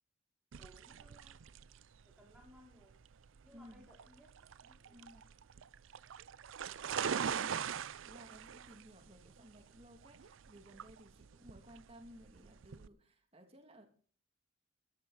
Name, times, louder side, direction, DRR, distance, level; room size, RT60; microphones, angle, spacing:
sound 1, 0.5-12.9, right 7 dB, 70° right, 0.5 m, -43 dB
voice 1, 0.6-1.4 2.1-2.9 3.4-5.2, equal, 5° right, -1 dB, 4.5 m, -63 dB
voice 2, 3.5-3.9 4.9-5.3 8.1-13.9, equal, 30° right, 5 dB, 2.6 m, -57 dB
13.5 x 12.5 x 4.1 m, 0.42 s
head